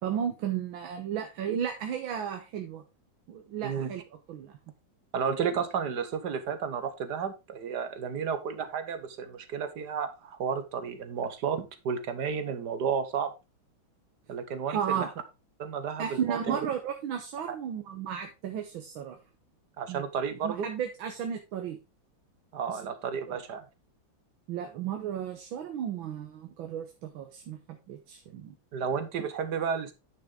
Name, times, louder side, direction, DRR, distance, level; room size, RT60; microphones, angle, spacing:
voice 1, 0.0-2.8 3.3-4.0 4.3-4.6 14.7-15.1 16.0-19.2 19.9-20.0 20.4-21.8 22.7-22.8 23.3-23.4 24.5-27.6 27.9-28.5, right 8 dB, 80° right, 5 dB, 1.8 m, -34 dB
voice 2, 5.1-13.3 14.3-15.1 15.6-16.6 17.5-17.6 19.8-20.7 22.5-23.6 28.7-29.9, right 6 dB, 60° right, 10 dB, 1.5 m, -32 dB
9.9 x 6.1 x 3.7 m, 0.26 s
omnidirectional pair, 2.2 m